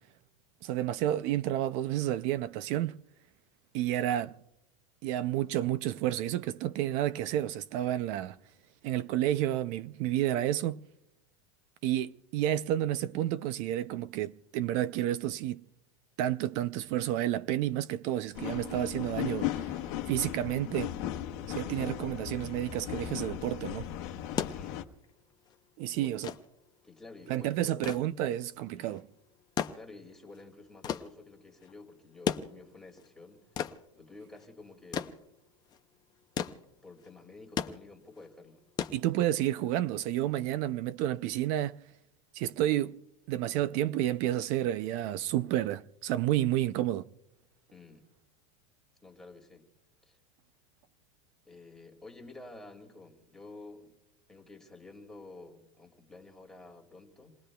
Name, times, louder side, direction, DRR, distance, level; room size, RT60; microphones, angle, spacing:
voice 1, 0.6-2.9 3.7-4.3 5.0-8.4 8.8-10.8 11.8-15.6 16.2-19.6 20.1-20.9 21.5-23.9 25.8-26.3 27.3-29.0 38.9-41.8 42.3-43.0 43.3-47.0, right 13 dB, 45° right, 0.4 m, -30 dB
sound 1, 18.3-24.8, left 12 dB, 55° left, 1.0 m, -37 dB
sound 2, 24.4-39.6 40.9-41.0, left 8 dB, 25° left, 0.6 m, -38 dB
voice 2, 24.5-24.9 25.9-26.3 26.8-27.8 28.7-29.0 29.7-35.3 36.6-38.6 47.7-48.1 49.0-49.7 50.0-50.2 51.4-53.9 54.3-57.4, left 3 dB, 5° left, 2.0 m, -51 dB
28.5 x 19.0 x 2.2 m
supercardioid pair, 145°, 16 cm